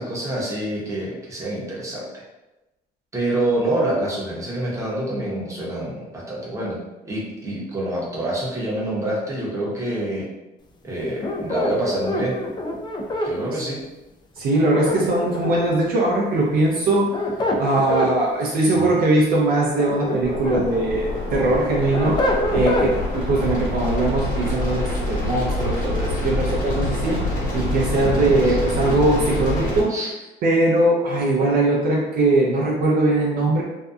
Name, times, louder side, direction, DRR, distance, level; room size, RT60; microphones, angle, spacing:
voice 1, 0.0-2.2 3.1-6.8 7.0-10.3 10.8-12.4 13.2-13.8 18.7-19.0 28.0-28.6 29.9-30.1, right 1 dB, 20° right, -5 dB, 0.8 m, -26 dB
sound 1, 11.2-13.3 14.6-15.7 16.9-18.1 19.5-20.7 21.1-22.9, left 1 dB, 25° left, 0.4 m, -25 dB
voice 2, 14.4-17.3 17.6-22.2 22.5-27.2 27.5-30.0 30.4-33.6, right 2 dB, 60° right, -2 dB, 0.5 m, -20 dB
sound 2, 20.2-29.8, left 1 dB, 55° left, 1.1 m, -26 dB
2.6 x 2.2 x 2.3 m, 1.0 s
cardioid pair, 110°, 17 cm